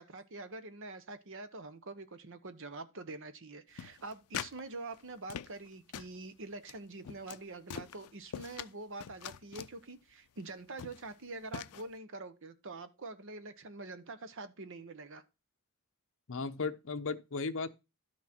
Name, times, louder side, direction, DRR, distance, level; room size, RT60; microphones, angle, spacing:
voice 1, 0.0-15.2, right 3 dB, 60° right, 1.1 m, -45 dB
sound 1, 3.8-4.6 4.9-5.7 5.9-6.2 6.6-6.8 7.0-7.4 7.7-8.7 9.0-9.7 10.4-10.5 10.8-11.1 11.5-11.8, left 9 dB, 90° left, 0.5 m, -43 dB
voice 2, 16.3-17.7, left 4 dB, 60° left, 0.8 m, -36 dB
12.0 x 6.2 x 4.4 m
head